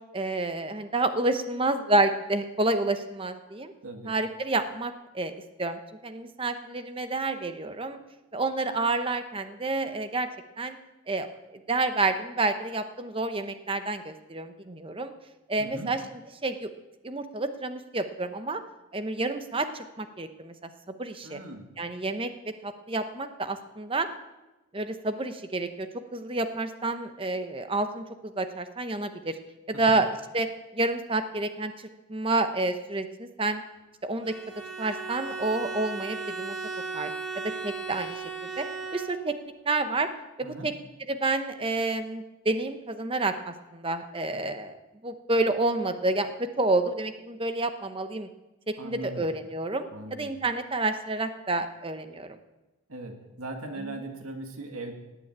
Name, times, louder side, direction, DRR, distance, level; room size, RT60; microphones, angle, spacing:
voice 1, 0.1-3.7 4.1-5.3 5.6-8.0 8.3-10.3 10.6-10.8 11.1-15.1 15.5-16.7 17.0-18.6 18.9-20.5 20.9-21.4 21.8-22.3 22.6-24.1 24.7-29.3 29.7-30.5 30.7-31.7 32.1-33.6 34.0-34.3 34.8-36.6 36.9-37.1 37.6-38.2 38.6-38.7 38.9-39.4 39.6-40.1 40.4-40.7 41.1-44.8 45.0-48.3 48.8-52.4, right 2 dB, 25° right, 9 dB, 0.8 m, -29 dB
voice 2, 3.8-4.2 15.6-16.0 21.2-21.7 29.7-30.0 40.4-40.7 48.8-49.3 49.9-50.4 52.9-54.9, right 2 dB, 90° right, 4 dB, 1.8 m, -39 dB
Bowed string instrument, 34.2-39.5, right 4 dB, 50° right, 3.1 m, -36 dB
18.0 x 7.0 x 8.7 m, 1.1 s
head